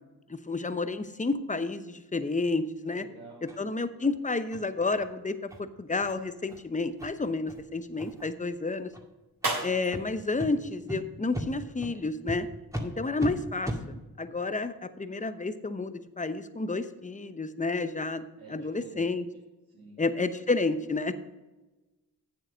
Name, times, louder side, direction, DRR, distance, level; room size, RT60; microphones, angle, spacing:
voice 1, 0.3-3.0 3.4-8.9 9.6-12.5 12.8-18.2 18.5-19.2 20.0-21.1, left 3 dB, 20° left, 11 dB, 0.9 m, -30 dB
voice 2, 2.8-3.5 18.4-19.0 19.7-20.0, right 3 dB, 75° right, -8 dB, 3.1 m, -48 dB
sound 1, 3.5-3.6 4.0-4.1 4.5-4.6 5.0-5.1 5.5-5.6 6.0-6.1 6.5-6.6 7.0-7.1 7.5-7.6 8.0-8.3 8.9-9.0 9.4-9.5 9.9-10.0 10.4-10.5 10.9-11.0 11.3-11.5 11.8-11.9 12.3-12.4 12.7-12.9 13.2-13.3 13.6-13.8, equal, 10° right, 2.1 m, -36 dB
sound 2, 5.8-11.8, right 2 dB, 60° right, 3.5 m, -40 dB
8.8 x 7.6 x 5.3 m, 1.1 s
cardioid pair, 45°, 39 cm